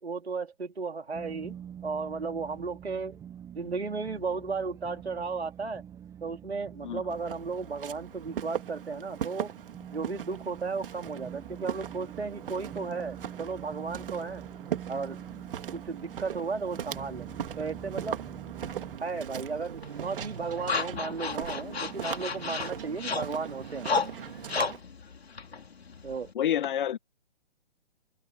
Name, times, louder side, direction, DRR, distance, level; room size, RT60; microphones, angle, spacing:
voice 1, 0.0-1.6 1.8-3.2 3.5-5.8 6.2-9.5 9.9-14.4 14.9-15.2 15.7-18.2 19.0-23.9 26.0-26.3, right 4 dB, 80° right, 4.1 m, -34 dB
sound 1, 1.1-19.0, right 9 dB, 10° right, 0.9 m, -45 dB
Walk footsteps, 7.1-24.8, right 9 dB, 55° right, 2.8 m, -39 dB
sound 2, 19.8-26.3, left 5 dB, 75° left, 3.0 m, -34 dB
voice 2, 26.4-27.0, left 10 dB, 50° left, 1.7 m, -28 dB
open air
figure-of-eight pair, 135°, 31 cm